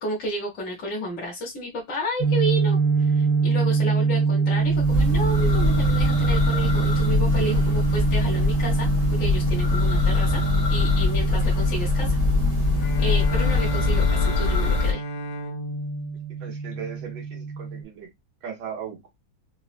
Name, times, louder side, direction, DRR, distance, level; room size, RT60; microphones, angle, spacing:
voice 1, 0.0-10.4 10.7-12.2 13.0-15.0, right 1 dB, 55° left, 1.2 m, -31 dB
sound 1, 2.2-17.8, right 5 dB, 65° right, 1.3 m, -25 dB
Church bell, 4.6-14.9, left 4 dB, 30° left, 0.8 m, -23 dB
Bowed string instrument, 12.8-17.2, left 8 dB, 80° left, 1.2 m, -34 dB
voice 2, 16.4-18.1 18.4-19.1, right 7 dB, 80° right, 1.5 m, -37 dB
4.0 x 2.2 x 2.4 m
omnidirectional pair, 2.0 m